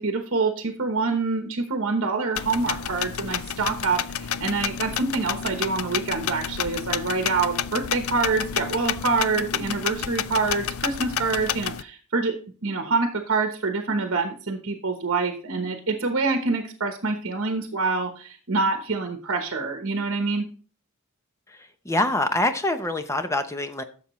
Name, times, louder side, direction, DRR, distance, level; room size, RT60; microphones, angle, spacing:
voice 1, 0.0-20.5, right 4 dB, 60° right, 5 dB, 1.0 m, -26 dB
sound 1, 2.3-11.8, left 9 dB, 70° left, 0.4 m, -30 dB
voice 2, 21.5-23.8, left 1 dB, 15° left, 9 dB, 0.7 m, -25 dB
11.5 x 7.0 x 3.1 m, 0.41 s
head